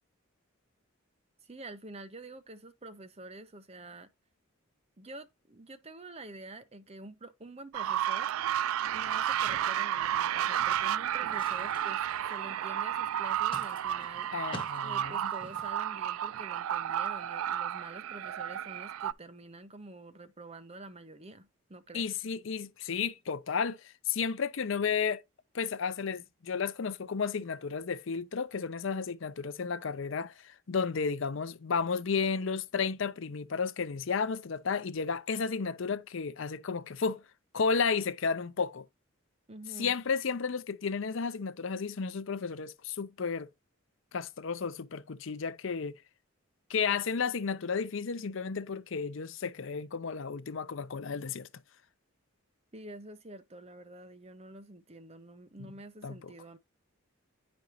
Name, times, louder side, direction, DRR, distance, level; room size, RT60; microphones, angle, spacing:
voice 1, 1.4-4.1 5.0-8.3 8.9-12.0 12.3-14.3 14.8-22.1 39.5-39.9 52.7-56.6, right 2 dB, 30° right, 0.8 m, -48 dB
sound 1, 7.7-19.1, right 10 dB, 80° right, 0.3 m, -32 dB
sound 2, 10.5-15.8, left 1 dB, 25° left, 1.5 m, -49 dB
voice 2, 14.3-15.3 21.9-25.2 25.5-37.2 37.5-38.9 39.8-43.5 44.1-46.0 46.7-51.5 55.6-55.7 56.0-56.3, left 5 dB, 60° left, 0.5 m, -33 dB
9.6 x 5.2 x 2.9 m
head